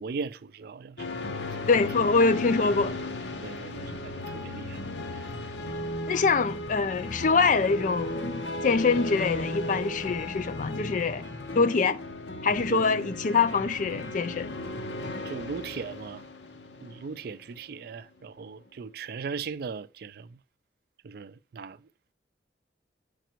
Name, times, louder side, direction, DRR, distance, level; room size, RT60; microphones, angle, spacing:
voice 1, 0.0-1.4 3.4-4.8 12.7-12.8 15.2-16.2 16.8-20.4 21.0-21.8, right 5 dB, 60° right, 0.4 m, -38 dB
sound 1, 1.0-17.8, left 2 dB, 80° left, 0.9 m, -35 dB
voice 2, 1.7-3.0 6.1-11.3 11.6-12.0 12.4-14.5, left 4 dB, 45° left, 0.4 m, -24 dB
9.0 x 5.2 x 4.5 m
head